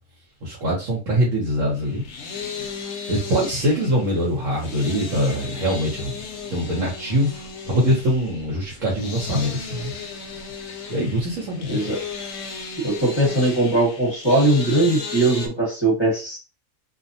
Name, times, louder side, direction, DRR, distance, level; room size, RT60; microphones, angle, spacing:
voice 1, 0.4-2.0 3.1-6.1 6.5-9.9 10.9-11.8, equal, 65° right, -4 dB, 1.2 m, -23 dB
sound 1, 1.7-15.5, left 5 dB, 65° left, 0.7 m, -35 dB
voice 2, 11.6-11.9 12.8-16.4, right 2 dB, 20° left, -4 dB, 1.2 m, -20 dB
2.7 x 2.0 x 2.7 m, 0.32 s
omnidirectional pair, 1.5 m